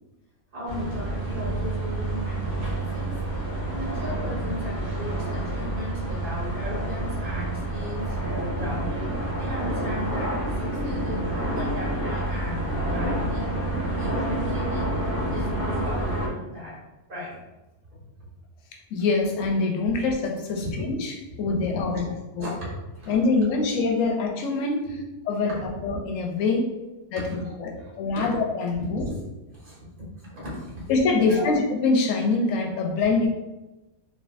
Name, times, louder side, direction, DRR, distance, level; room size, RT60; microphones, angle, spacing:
voice 1, 0.5-8.2 8.5-13.6 14.0-14.9 15.3-16.8 17.1-17.4 17.9-18.0 20.6-20.7 21.9-22.1 22.4-23.2 23.5-23.7 24.8-25.0 25.5-25.8 27.3-28.3 28.8-29.2 29.5-29.9 30.2-30.9 31.3-31.5, left 1 dB, 45° right, -6 dB, 1.3 m, -36 dB
sound 1, 0.7-16.3, right 1 dB, 60° right, 0.9 m, -28 dB
voice 2, 18.9-21.1 21.4-22.1 22.3-22.5 23.1-24.8 25.3-25.5 25.8-26.6 27.1-27.2 27.6-29.0 30.9-33.3, left 3 dB, 90° left, 1 dB, 1.0 m, -24 dB
3.4 x 2.2 x 2.4 m, 1.0 s
omnidirectional pair, 1.3 m